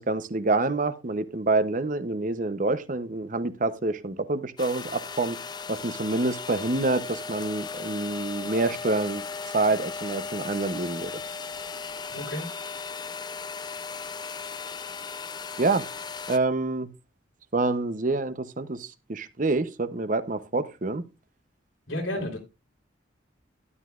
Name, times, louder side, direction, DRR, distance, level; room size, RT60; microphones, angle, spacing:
voice 1, 0.0-5.4 5.7-9.2 9.5-11.1 15.6-15.9 16.3-16.9 17.5-21.0, right 2 dB, 40° right, 0.8 m, -27 dB
sound 1, 4.6-16.4, left 5 dB, 20° left, 0.4 m, -36 dB
voice 2, 12.1-12.5 21.9-22.4, left 1 dB, 85° left, 3.6 m, -31 dB
12.5 x 11.5 x 2.4 m
head